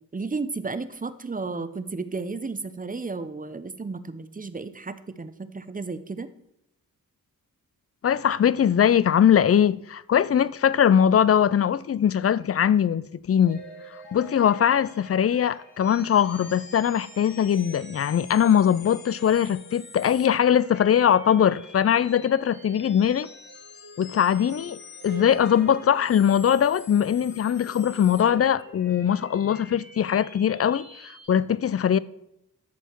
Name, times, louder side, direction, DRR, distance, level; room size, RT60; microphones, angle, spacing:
voice 1, 0.1-6.3, right 4 dB, 25° right, 0.7 m, -33 dB
voice 2, 8.0-13.6 14.1-23.3 24.0-32.0, left 9 dB, 45° left, 0.4 m, -21 dB
sound 1, 13.4-31.3, left 2 dB, 80° left, 4.7 m, -46 dB
12.5 x 7.0 x 4.6 m
wide cardioid pair, 90°, 35 cm